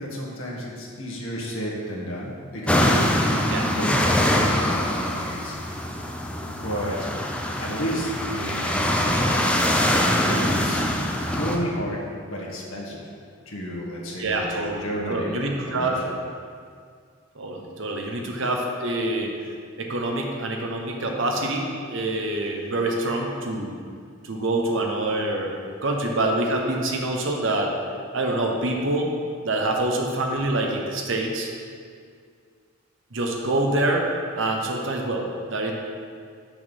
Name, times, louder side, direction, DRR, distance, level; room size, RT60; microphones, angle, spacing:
voice 1, 0.0-5.9 6.4-7.1 7.6-9.7 10.0-10.8 11.3-13.1 13.4-16.2, equal, 80° left, -3 dB, 1.6 m, -32 dB
sound 1, 2.7-11.6, left 1 dB, 5° left, 0.5 m, -23 dB
voice 2, 3.5-4.0 14.2-16.0 17.3-19.3 19.8-23.7 24.2-25.5 25.8-27.7 28.1-29.1 29.4-31.5 33.1-35.7, right 2 dB, 70° right, 1 dB, 1.1 m, -26 dB
6.3 x 5.9 x 5.4 m, 2.1 s
head